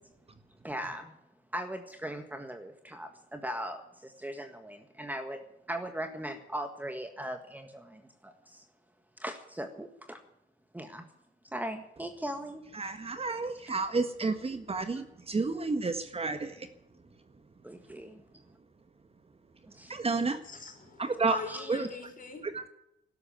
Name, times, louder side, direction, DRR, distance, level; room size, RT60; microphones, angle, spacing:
voice 1, 0.6-1.1 1.5-5.4 5.7-8.6 9.2-10.2 10.7-11.1 11.4-12.6 17.6-18.2 19.7-19.9 21.5-21.7, right 1 dB, 10° right, 7 dB, 1.7 m, -39 dB
voice 2, 12.7-16.7 19.9-20.4 21.0-21.3 21.7-21.9 22.5-22.7, right 4 dB, 30° right, 10 dB, 1.6 m, -31 dB
voice 3, 20.4-22.5, left 4 dB, 45° left, 5 dB, 4.7 m, -41 dB
12.5 x 12.0 x 9.1 m, 0.83 s
cardioid pair, 90°, 20 cm